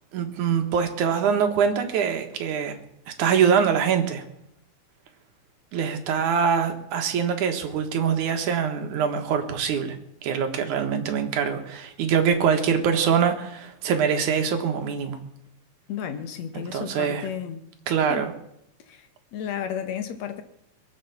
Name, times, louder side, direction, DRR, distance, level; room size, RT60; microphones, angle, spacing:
voice 1, 0.1-2.7 3.2-4.2 5.7-10.0 10.2-15.2 16.5-17.3 17.9-18.3, right 7 dB, 70° right, 6 dB, 3.0 m, -24 dB
voice 2, 15.9-17.6 18.1-18.2 18.9-20.4, left 8 dB, 65° left, 8 dB, 2.4 m, -33 dB
22.0 x 8.1 x 7.1 m, 0.77 s
omnidirectional pair, 3.6 m